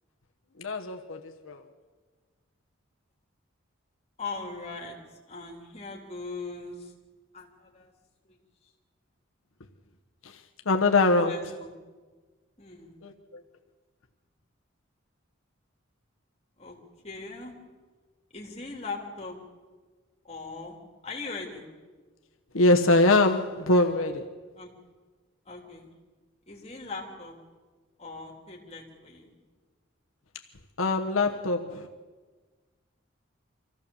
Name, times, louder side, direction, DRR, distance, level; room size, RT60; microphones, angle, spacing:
voice 1, 0.6-1.6 10.7-11.4 13.0-13.1 22.5-24.2 30.8-31.9, left 2 dB, 85° left, 1.2 m, -23 dB
voice 2, 4.2-4.9 5.3-6.9 7.3-7.9 8.3-8.4 11.2-11.8 12.6-13.0 16.6-16.7 17.0-17.5 18.3-19.4 20.2-21.7 24.6-24.7 25.4-25.9 26.5-27.4 28.0-29.3, left 3 dB, 30° left, 3.2 m, -40 dB
25.0 x 15.5 x 7.1 m
head